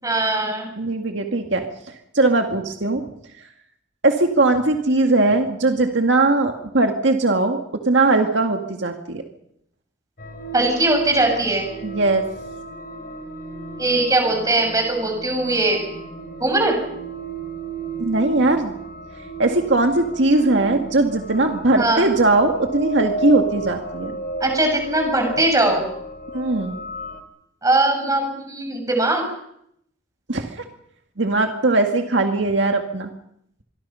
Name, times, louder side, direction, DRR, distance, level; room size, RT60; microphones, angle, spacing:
voice 1, 0.0-0.7 10.5-11.6 13.8-15.8 16.4-16.8 21.8-22.0 24.4-25.8 27.6-29.2, right 2 dB, 20° right, 3 dB, 6.6 m, -20 dB
voice 2, 0.8-1.6 2.1-3.0 4.0-7.6 7.9-9.2 11.8-12.2 18.0-18.7 19.4-24.1 26.3-26.8 30.3-30.5 31.2-33.1, right 2 dB, 65° right, 4 dB, 2.1 m, -19 dB
sound 1, 10.2-27.2, right 2 dB, 55° left, 3.8 m, -33 dB
26.5 x 23.0 x 5.7 m, 0.73 s
head